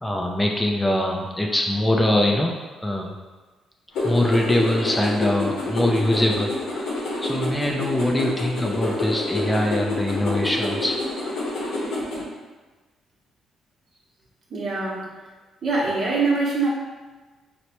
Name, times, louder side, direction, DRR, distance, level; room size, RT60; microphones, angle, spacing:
voice 1, 0.0-2.5 2.8-3.1 4.0-10.9, left 1 dB, 10° left, 0 dB, 0.4 m, -23 dB
sound 1, 3.9-12.2, left 2 dB, 80° left, 0.8 m, -27 dB
voice 2, 14.5-15.1 15.6-16.7, right 3 dB, 55° right, -3 dB, 0.8 m, -23 dB
4.2 x 2.1 x 2.9 m, 1.3 s
cardioid pair, 90°, 0 cm